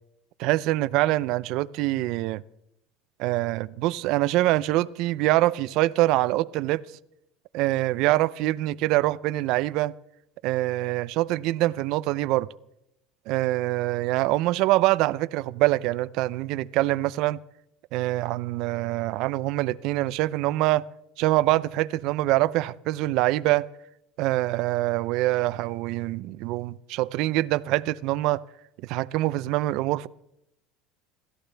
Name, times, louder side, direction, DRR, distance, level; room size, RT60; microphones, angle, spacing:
voice 1, 0.4-2.4 3.2-6.8 7.5-9.9 10.4-12.5 13.3-17.4 17.9-20.9 21.2-23.7 24.2-28.4 28.8-30.1, right 17 dB, 60° right, 0.5 m, -24 dB
28.5 x 14.0 x 3.4 m
cardioid pair, 145°, 0 cm